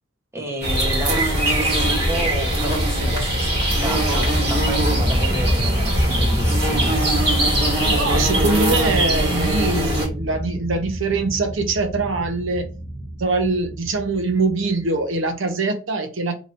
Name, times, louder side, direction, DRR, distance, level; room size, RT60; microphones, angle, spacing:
voice 1, 0.3-3.5 3.8-7.0, right 1 dB, 15° right, 1 dB, 0.8 m, -31 dB
sound 1, 0.6-10.1, right 1 dB, 55° right, 1.6 m, -21 dB
sound 2, 2.7-15.1, equal, 35° right, 1.1 m, -27 dB
voice 2, 7.8-12.7 13.2-16.4, right 3 dB, 80° right, 6 dB, 0.7 m, -23 dB
2.9 x 2.5 x 4.2 m, 0.34 s
head